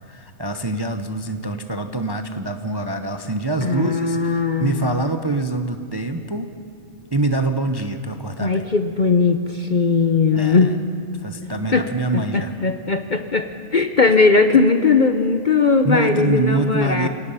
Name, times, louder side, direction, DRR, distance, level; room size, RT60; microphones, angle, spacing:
voice 1, 0.1-6.5 7.1-8.6 10.3-10.8 11.2-12.5 15.8-17.1, right 2 dB, 25° right, 7 dB, 0.6 m, -25 dB
voice 2, 3.6-5.0 8.4-10.8 11.7-11.8 12.3-17.1, left 4 dB, 40° left, 8 dB, 0.8 m, -18 dB
28.0 x 18.0 x 5.6 m, 2.7 s
omnidirectional pair, 1.4 m